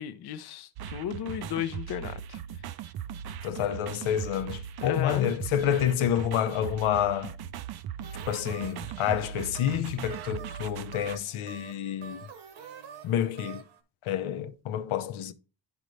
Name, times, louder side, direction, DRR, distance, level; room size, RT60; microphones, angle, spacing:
voice 1, 0.0-2.4 4.8-5.3 9.1-9.2, left 10 dB, 55° left, 0.6 m, -34 dB
sound 1, 0.8-11.2, right 9 dB, 55° right, 0.5 m, -39 dB
voice 2, 3.4-7.4 8.3-12.2 13.0-13.6 14.0-15.3, left 10 dB, 85° left, 0.8 m, -29 dB
sound 2, 8.0-13.8, right 8 dB, 75° right, 1.2 m, -47 dB
10.5 x 4.0 x 3.2 m
cardioid pair, 155°, 48 cm